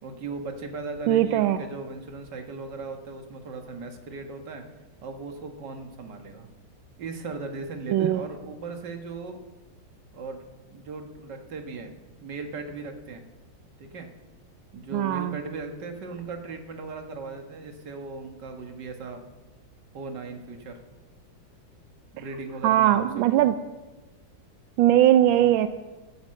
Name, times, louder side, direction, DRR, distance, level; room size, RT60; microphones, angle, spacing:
voice 1, 0.0-4.6 5.0-6.5 7.0-9.4 10.1-13.2 13.8-14.1 14.7-19.2 19.9-20.8 22.1-23.4, right 3 dB, 65° right, 5 dB, 2.0 m, -38 dB
voice 2, 1.1-1.6 7.9-8.2 14.9-15.4 22.6-23.6 24.8-25.7, right 12 dB, 85° right, 10 dB, 1.4 m, -20 dB
12.0 x 10.5 x 7.6 m, 1.2 s
omnidirectional pair, 2.1 m